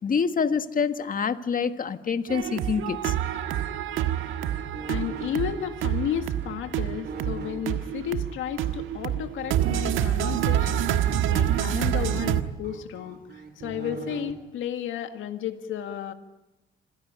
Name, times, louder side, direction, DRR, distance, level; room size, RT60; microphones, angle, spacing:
voice 1, 0.0-3.1, left 6 dB, 45° left, 10 dB, 1.6 m, -26 dB
sound 1, 2.3-12.4, right 11 dB, 85° right, 1.5 m, -27 dB
sound 2, 4.0-8.7 9.4-14.3, right 5 dB, 55° right, 3.6 m, -42 dB
voice 2, 4.9-16.1, left 10 dB, 80° left, 7 dB, 1.9 m, -33 dB
26.5 x 16.5 x 10.0 m, 0.97 s
cardioid pair, 90°, 20 cm